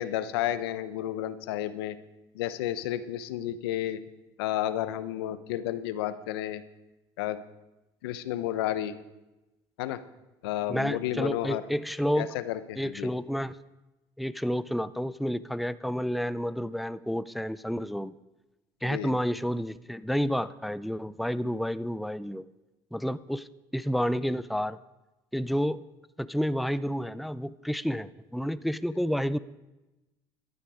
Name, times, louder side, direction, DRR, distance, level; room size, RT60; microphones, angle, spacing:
voice 1, 0.0-2.0 2.3-4.0 4.4-6.6 7.2-7.4 8.0-8.9 9.8-10.0 10.4-11.6 12.2-13.1 18.8-19.1, left 12 dB, 90° left, 14 dB, 0.8 m, -31 dB
voice 2, 10.7-12.4 12.8-13.6 14.2-18.1 18.8-22.5 22.9-24.8 25.3-25.8 26.2-29.4, equal, ahead, 16 dB, 0.5 m, -30 dB
14.0 x 12.0 x 4.9 m, 1.0 s
supercardioid pair, 80°, 12 cm